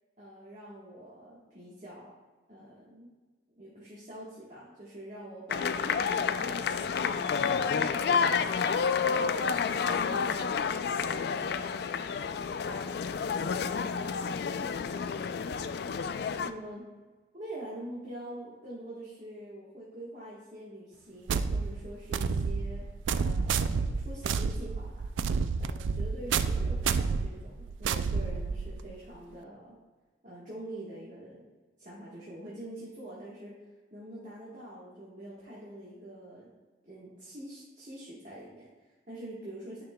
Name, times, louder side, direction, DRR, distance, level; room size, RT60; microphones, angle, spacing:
voice 1, 0.2-2.1 2.5-3.1 3.6-8.0 9.2-9.5 16.4-16.8 17.3-22.8 23.1-25.1 25.6-29.8 30.2-31.4 31.8-33.5 33.9-36.5 36.8-39.8, right 1 dB, 40° right, -7 dB, 1.3 m, -45 dB
sound 1, 5.5-16.5, left 6 dB, 55° left, 0.3 m, -30 dB
voice 2, 9.0-12.1 12.7-15.7, left 2 dB, 80° left, 1 dB, 1.1 m, -46 dB
sound 2, 21.3-28.9, right 5 dB, 80° right, 0.3 m, -30 dB
10.0 x 5.7 x 2.2 m, 1.3 s
head